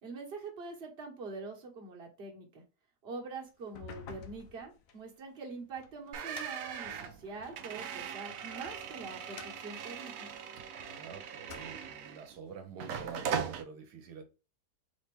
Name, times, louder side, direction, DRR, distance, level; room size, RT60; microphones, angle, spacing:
voice 1, 0.0-2.6 3.0-10.3, right 4 dB, 40° right, 1.4 m, -44 dB
sound 1, 3.6-7.7 8.3-11.0 11.3-12.1, left 7 dB, 90° left, 1.2 m, -52 dB
sound 2, 6.1-12.4 12.8-13.6, right 7 dB, 65° right, 1.0 m, -40 dB
voice 2, 10.7-14.2, right 6 dB, 80° right, 1.3 m, -48 dB
4.3 x 3.4 x 3.3 m
omnidirectional pair, 1.7 m